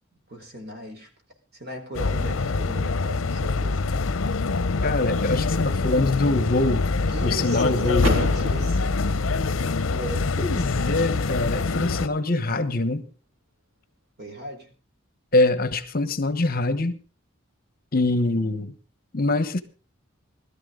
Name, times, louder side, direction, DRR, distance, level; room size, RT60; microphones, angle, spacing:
voice 1, 0.3-1.1 1.5-3.8 7.1-8.8 9.2-9.4 9.9-10.9 14.2-14.7, right 1 dB, 50° right, 4.3 m, -37 dB
sound 1, 1.9-12.1, left 3 dB, 75° left, 0.7 m, -25 dB
voice 2, 4.8-6.9 7.2-8.1 10.4-13.1 15.3-17.0 17.9-18.7 19.1-19.6, left 2 dB, 45° left, 1.1 m, -24 dB
Car / Door, 8.0-9.9, left 1 dB, 80° right, 3.5 m, -32 dB
21.0 x 13.0 x 3.9 m
head